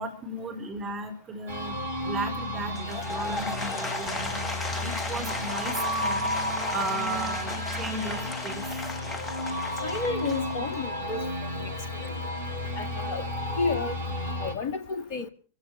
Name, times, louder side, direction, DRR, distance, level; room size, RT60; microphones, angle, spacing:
voice 1, 0.0-1.8 2.0-4.4 4.8-6.2 6.7-8.7, right 2 dB, 25° right, 4.4 m, -35 dB
sound 1, 1.5-14.5, left 1 dB, 75° right, 3.0 m, -32 dB
Applause / Crowd, 2.7-10.9, left 3 dB, 20° left, 1.8 m, -35 dB
voice 2, 9.8-12.1 12.8-13.3 13.6-13.9 14.4-15.3, left 4 dB, 45° left, 2.0 m, -32 dB
28.0 x 15.5 x 3.2 m
figure-of-eight pair, 90°, 0 cm